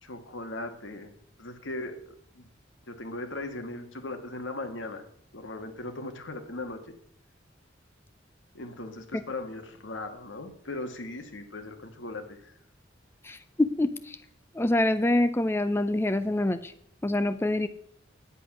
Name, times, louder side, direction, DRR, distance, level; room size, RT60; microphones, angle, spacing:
voice 1, 0.0-1.1 1.4-2.5 2.9-5.1 5.3-6.8 8.5-12.5, left 2 dB, 90° left, 7 dB, 1.6 m, -38 dB
voice 2, 13.2-14.2 14.5-16.7 17.0-17.7, left 1 dB, 15° left, 11 dB, 0.4 m, -26 dB
9.8 x 8.3 x 6.0 m, 0.68 s
head